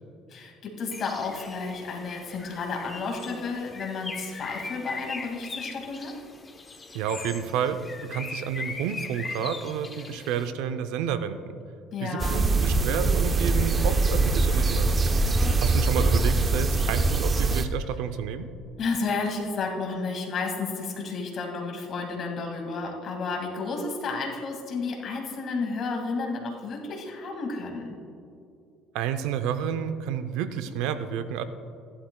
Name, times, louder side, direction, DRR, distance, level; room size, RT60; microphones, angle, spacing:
voice 1, 0.3-6.1 11.9-12.5 18.8-27.9, left 4 dB, 50° left, 1 dB, 2.1 m, -32 dB
Bird, 0.9-10.5, left 3 dB, 20° left, 0.8 m, -40 dB
voice 2, 6.9-11.4 12.0-15.0 15.6-18.5 28.9-31.4, right 8 dB, 80° right, 10 dB, 0.6 m, -30 dB
sound 1, 12.2-17.6, right 3 dB, 25° right, 0.6 m, -23 dB
15.0 x 11.0 x 2.3 m, 2.5 s
cardioid pair, 115°, 0 cm